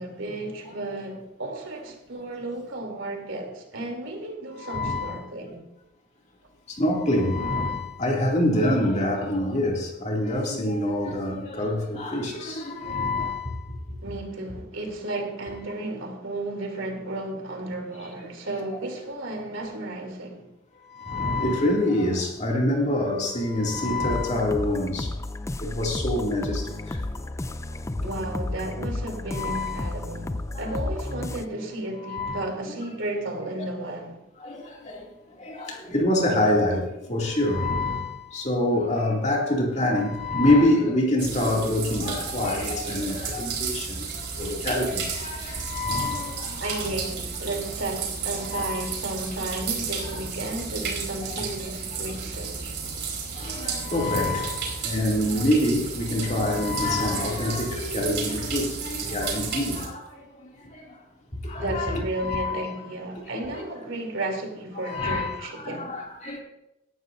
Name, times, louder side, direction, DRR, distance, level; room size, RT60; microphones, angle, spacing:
voice 1, 0.0-5.6 14.0-20.5 28.0-34.2 46.6-52.8 61.5-65.9, right 2 dB, 75° right, 3.1 m, -33 dB
voice 2, 4.6-5.2 6.7-13.8 20.8-25.2 25.6-27.2 29.3-29.9 30.9-31.0 32.0-32.4 33.6-33.9 34.4-46.8 48.5-48.8 53.3-61.0 61.4-62.7 63.6-63.7 64.8-66.4, left 1 dB, 35° left, 2.5 m, -26 dB
sound 1, 24.1-31.5, left 2 dB, 15° left, 0.4 m, -32 dB
sound 2, 41.2-59.9, right 5 dB, 55° right, 4.2 m, -33 dB
17.5 x 12.0 x 2.6 m
head